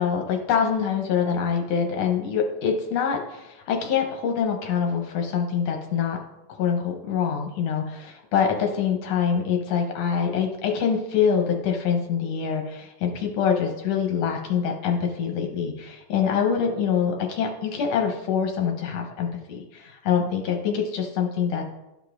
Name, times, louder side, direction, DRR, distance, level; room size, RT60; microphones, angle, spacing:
voice 1, 0.0-6.2 6.5-21.6, left 7 dB, 70° left, 2 dB, 1.7 m, -25 dB
13.0 x 5.2 x 2.5 m, 0.95 s
omnidirectional pair, 3.4 m